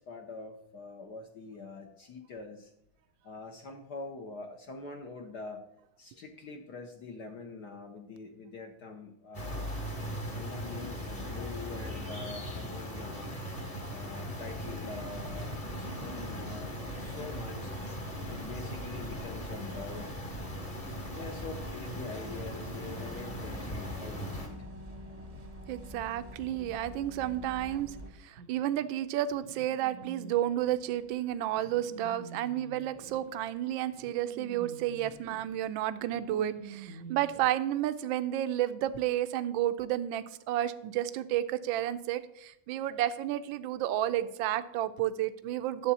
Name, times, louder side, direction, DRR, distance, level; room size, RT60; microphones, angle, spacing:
voice 1, 0.0-2.7 3.2-5.6 6.0-9.8 10.3-13.3 13.9-16.7 17.0-17.7 18.3-20.1 21.1-24.6, left 4 dB, 60° left, 3 dB, 1.2 m, -44 dB
sound 1, 9.3-24.5, equal, 20° left, 1.0 m, -39 dB
sound 2, 14.4-28.1, right 1 dB, 25° right, 0.9 m, -46 dB
voice 2, 25.7-27.9 28.2-45.9, right 12 dB, 75° right, 11 dB, 1.3 m, -31 dB
sound 3, 28.4-37.5, right 3 dB, 55° right, 0.9 m, -49 dB
11.0 x 7.4 x 4.1 m, 0.76 s
omnidirectional pair, 2.4 m